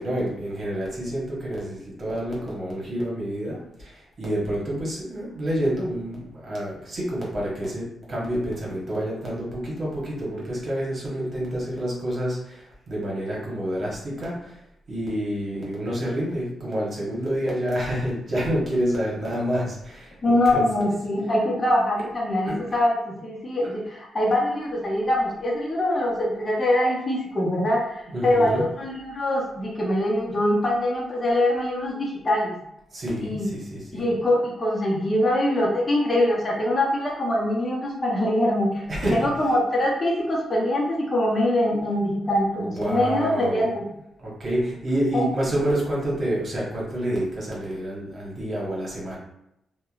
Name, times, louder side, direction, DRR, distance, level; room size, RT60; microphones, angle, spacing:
voice 1, 0.0-14.6 14.9-20.9 22.5-22.6 28.1-28.7 32.9-34.1 38.9-39.2 42.6-43.7 44.2-49.2, equal, 50° right, -4 dB, 1.1 m, -28 dB
voice 2, 20.2-32.6 33.2-33.5 33.9-38.8 39.1-43.8 45.1-45.3, left 1 dB, 35° left, -3 dB, 0.7 m, -23 dB
2.8 x 2.2 x 2.3 m, 0.82 s
cardioid pair, 70°, 0 cm